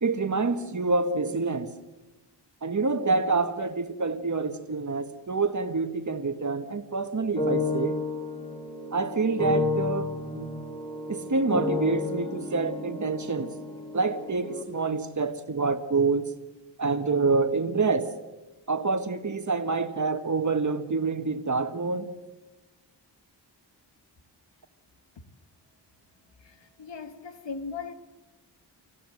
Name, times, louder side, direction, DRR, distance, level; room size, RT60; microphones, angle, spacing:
voice 1, 0.0-1.7 2.6-8.0 8.9-10.5 11.1-13.5 13.9-16.3 16.8-18.1 18.7-22.1, right 4 dB, 40° right, 1.7 m, -27 dB
sound 1, 7.1-14.6, left 3 dB, 10° left, 3.4 m, -31 dB
voice 2, 26.4-27.9, left 5 dB, 75° left, 1.7 m, -39 dB
26.0 x 16.0 x 7.9 m
wide cardioid pair, 100°, 43 cm